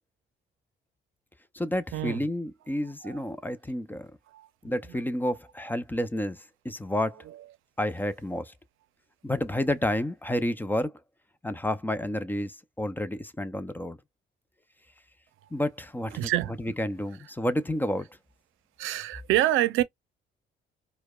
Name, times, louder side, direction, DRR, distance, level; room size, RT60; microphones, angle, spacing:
voice 1, 1.5-4.1 4.6-6.4 6.6-7.2 7.8-8.5 9.2-10.9 11.4-14.0 15.5-16.3 16.6-18.1, left 1 dB, 10° left, 0.5 m, -30 dB
voice 2, 16.1-16.6 18.8-19.8, right 14 dB, 85° right, 0.6 m, -26 dB
4.5 x 2.2 x 2.3 m
cardioid pair, 90°, 20 cm